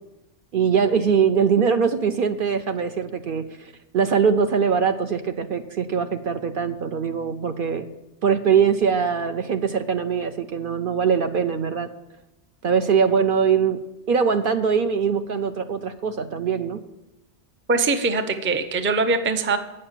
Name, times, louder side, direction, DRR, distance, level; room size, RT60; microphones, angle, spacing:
voice 1, 0.5-7.9 8.2-11.9 12.6-13.8 14.1-16.8, right 6 dB, 60° right, 8 dB, 0.6 m, -22 dB
voice 2, 17.7-19.6, right 3 dB, 15° right, 9 dB, 0.4 m, -22 dB
8.6 x 6.6 x 7.3 m, 0.98 s
omnidirectional pair, 1.2 m